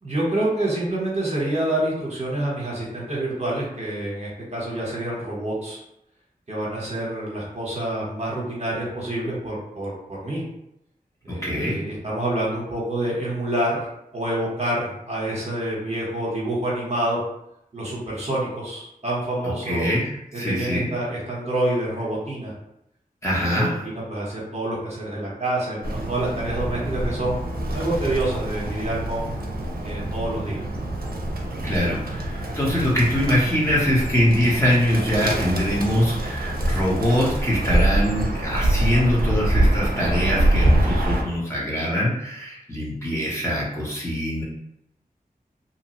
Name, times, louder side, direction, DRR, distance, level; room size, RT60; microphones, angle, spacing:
voice 1, 0.0-5.8 6.5-10.4 11.2-13.8 14.1-17.2 17.7-19.9 20.3-22.5 23.5-27.4 27.7-29.3 29.8-30.8, right 1 dB, 45° right, -5 dB, 1.0 m, -27 dB
voice 2, 11.3-11.8 19.6-20.0 20.3-20.9 23.2-23.8 31.6-44.4, equal, 20° left, -6 dB, 1.0 m, -23 dB
Bird, 25.8-41.2, right 1 dB, 75° right, 0.5 m, -25 dB
2.8 x 2.3 x 3.0 m, 0.80 s
wide cardioid pair, 55°, 15 cm